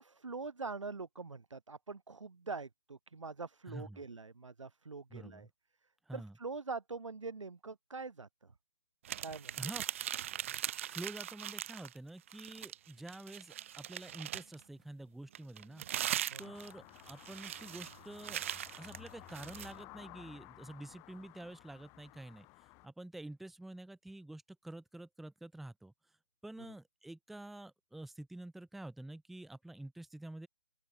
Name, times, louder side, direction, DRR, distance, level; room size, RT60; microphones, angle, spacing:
voice 1, 0.0-5.5 6.1-8.5 9.2-9.6 16.3-16.5 26.7-26.8, right 4 dB, 80° right, 5.1 m, -44 dB
voice 2, 3.7-4.0 5.1-5.5 6.1-6.3 9.6-9.8 10.9-15.8 16.4-18.4 18.8-22.5 22.8-25.9 26.4-30.5, right 1 dB, ahead, 0.7 m, -48 dB
sound 1, 9.0-12.0 12.3-14.6 15.3-19.7, right 11 dB, 25° right, 0.4 m, -40 dB
sound 2, 16.4-22.9, left 24 dB, 20° left, 4.7 m, -55 dB
open air
hypercardioid pair, 155°, 16 cm